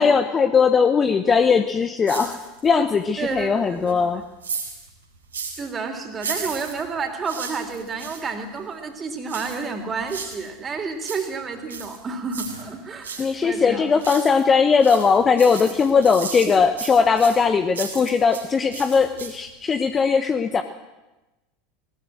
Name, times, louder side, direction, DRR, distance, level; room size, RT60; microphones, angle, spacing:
voice 1, 0.0-4.2 13.2-20.6, left 5 dB, 25° left, 8 dB, 1.2 m, -19 dB
sound 1, 2.1-2.8 3.2-5.7 6.1-8.3 9.3-10.5 10.8-13.3 13.7-14.5 14.8-18.5 18.7-19.5 19.9-20.0, right 5 dB, 75° right, 4.2 m, -35 dB
voice 2, 3.2-4.2 5.6-13.9 16.5-16.6, right 4 dB, 25° right, 5 dB, 3.6 m, -30 dB
19.0 x 19.0 x 7.8 m, 1.0 s
figure-of-eight pair, 75°, 0 cm